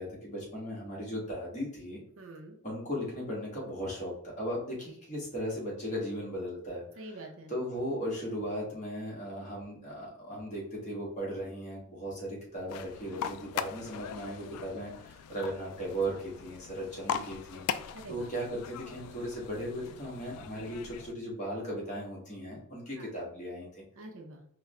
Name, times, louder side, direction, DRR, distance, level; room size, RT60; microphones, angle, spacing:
voice 1, 0.0-2.0 2.6-7.0 7.5-23.8, equal, 30° left, -4 dB, 1.5 m, -37 dB
voice 2, 2.2-2.6 7.0-7.5 17.9-18.2 23.0-23.3 24.0-24.4, right 2 dB, 65° right, 2 dB, 0.7 m, -46 dB
sound 1, 12.7-21.1, left 8 dB, 90° left, 0.3 m, -40 dB
4.8 x 2.3 x 3.2 m, 0.65 s
head